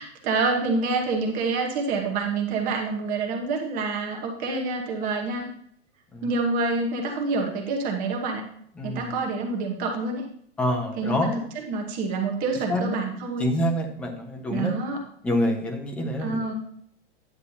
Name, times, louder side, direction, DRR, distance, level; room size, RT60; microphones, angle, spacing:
voice 1, 0.0-5.5 6.2-8.4 8.8-10.2 11.0-13.5 14.5-15.0 16.2-16.5, right 3 dB, 25° right, 2 dB, 1.1 m, -27 dB
voice 2, 8.8-9.2 10.6-11.3 12.7-12.8 13.4-14.7 15.2-16.5, left 1 dB, 5° left, 3 dB, 0.4 m, -26 dB
9.7 x 8.1 x 2.7 m, 0.65 s
supercardioid pair, 165°, 31 cm